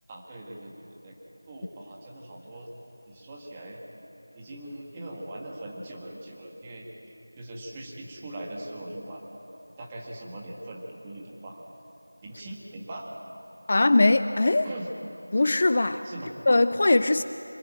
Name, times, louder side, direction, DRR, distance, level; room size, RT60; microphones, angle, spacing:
voice 1, 0.1-1.2 1.5-2.7 3.1-3.8 4.3-6.9 7.4-9.4 9.8-11.6 12.2-13.1 14.6-14.9 16.0-16.3, right 1 dB, 15° right, -2 dB, 1.9 m, -41 dB
voice 2, 13.7-14.7 15.3-16.0 16.5-17.2, left 2 dB, 35° left, 12 dB, 0.5 m, -21 dB
25.5 x 15.0 x 9.0 m, 2.9 s
figure-of-eight pair, 175°, 0 cm